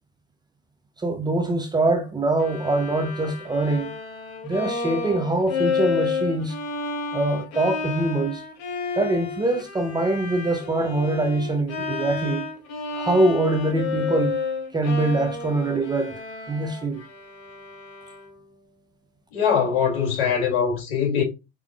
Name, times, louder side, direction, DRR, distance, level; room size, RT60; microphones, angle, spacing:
voice 1, 1.0-3.9 4.4-6.6 7.1-8.4 8.9-12.5 12.9-14.4 14.7-16.2 16.5-17.0, right 2 dB, 15° right, 0.7 m, -23 dB
Bowed string instrument, 2.4-18.5, left 4 dB, 55° left, 1.2 m, -31 dB
voice 2, 19.3-21.2, left 7 dB, 70° left, 2.6 m, -22 dB
4.8 x 3.6 x 2.3 m
hypercardioid pair, 85°, 31 cm